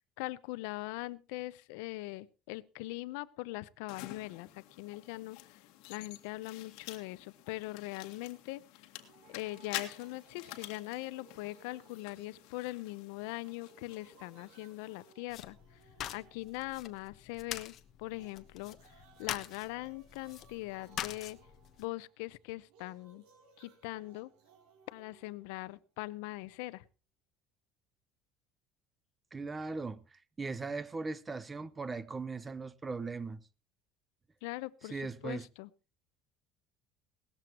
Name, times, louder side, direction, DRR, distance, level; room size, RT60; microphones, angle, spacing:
voice 1, 0.2-5.6 5.9-8.6 9.3-15.6 16.1-21.4 21.8-23.2 23.6-24.3 24.9-26.8 34.4-35.7, left 20 dB, 90° left, 0.7 m, -41 dB
sound 1, 3.9-15.1, left 15 dB, 70° left, 1.9 m, -49 dB
sound 2, 9.0-13.0 13.3-17.1 18.0-26.0, right 5 dB, 70° right, 4.4 m, -63 dB
sound 3, 15.3-21.9, left 11 dB, 40° left, 1.1 m, -44 dB
voice 2, 29.3-33.4 34.9-35.5, right 4 dB, 15° right, 0.7 m, -39 dB
18.5 x 14.0 x 3.0 m
cardioid pair, 160°, 0 cm